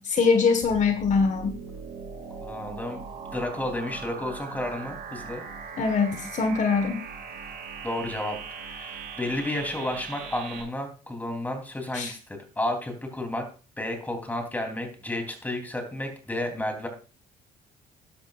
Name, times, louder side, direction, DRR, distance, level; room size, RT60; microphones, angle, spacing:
voice 1, 0.0-1.6 5.8-7.0 11.9-12.1, left 5 dB, 45° left, 7 dB, 1.4 m, -23 dB
sound 1, 0.6-10.6, right 5 dB, 80° right, 5.3 m, -40 dB
voice 2, 2.4-3.0 3.3-5.4 7.8-8.4 8.6-13.5 13.8-16.9, left 1 dB, 10° left, 4 dB, 3.2 m, -32 dB
12.0 x 11.5 x 2.5 m, 0.35 s
cardioid pair, 110°, 17 cm